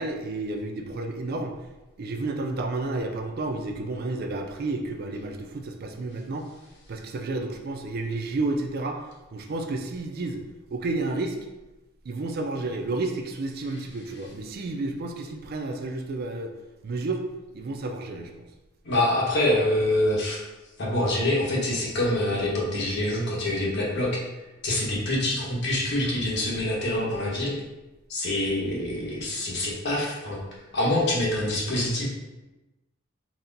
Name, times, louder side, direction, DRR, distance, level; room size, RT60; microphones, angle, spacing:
voice 1, 0.0-1.5 2.0-6.5 6.9-9.0 9.3-10.4 10.7-11.4 12.0-16.5 16.8-17.2 17.5-18.5, right 2 dB, 50° right, 5 dB, 0.4 m, -31 dB
voice 2, 18.8-20.4 20.8-24.2 24.6-27.5 28.1-30.4 30.7-32.1, left 1 dB, 60° left, -3 dB, 1.1 m, -25 dB
4.1 x 2.2 x 3.9 m, 1.1 s
head